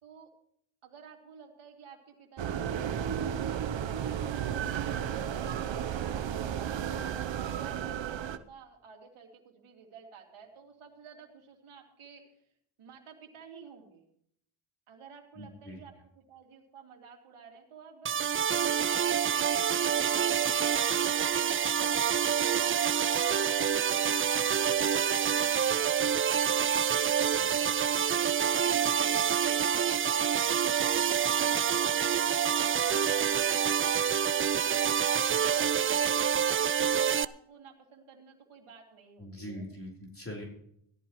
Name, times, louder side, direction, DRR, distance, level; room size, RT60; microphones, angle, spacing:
voice 1, 0.8-2.7 3.0-12.5 12.8-14.1 14.9-33.0 33.6-33.9 34.5-39.7, right 6 dB, 80° right, 3 dB, 2.8 m, -52 dB
sound 1, 2.4-8.4, right 9 dB, 60° right, 0.9 m, -33 dB
voice 2, 15.4-15.8 27.3-27.5 39.2-40.4, equal, 25° left, -1 dB, 4.2 m, -42 dB
Distorted Synth Atmoslead, 18.1-37.3, right 8 dB, 30° right, 0.4 m, -27 dB
17.0 x 12.0 x 3.1 m, 0.69 s
cardioid pair, 60°, 49 cm